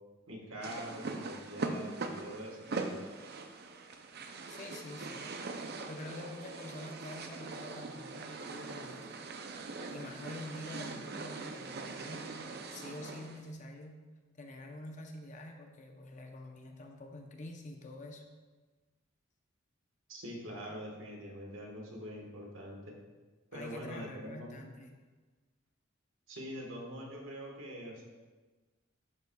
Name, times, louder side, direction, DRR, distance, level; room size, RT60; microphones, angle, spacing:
voice 1, 0.3-3.1 20.1-22.9 23.5-24.6 26.3-28.0, equal, 75° right, 0 dB, 1.5 m, -44 dB
sound 1, 0.6-13.4, right 3 dB, 55° right, 0.5 m, -42 dB
voice 2, 4.5-5.3 5.9-9.2 9.9-14.0 14.3-18.2 23.5-24.9, left 1 dB, 40° left, 3 dB, 0.7 m, -47 dB
10.5 x 5.5 x 2.3 m, 1.3 s
head